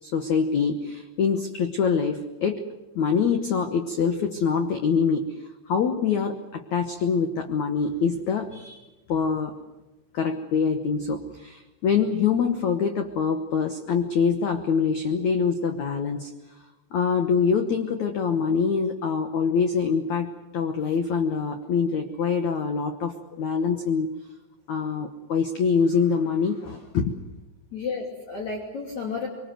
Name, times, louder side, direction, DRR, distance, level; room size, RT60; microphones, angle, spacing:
voice 1, 0.0-2.6 2.9-9.6 10.1-16.3 16.9-24.1 24.7-27.1, left 6 dB, 90° left, 6 dB, 1.6 m, -25 dB
voice 2, 23.3-23.7 27.7-29.3, left 4 dB, 45° left, 0 dB, 3.5 m, -32 dB
25.0 x 24.0 x 7.8 m, 1.1 s
omnidirectional pair, 5.3 m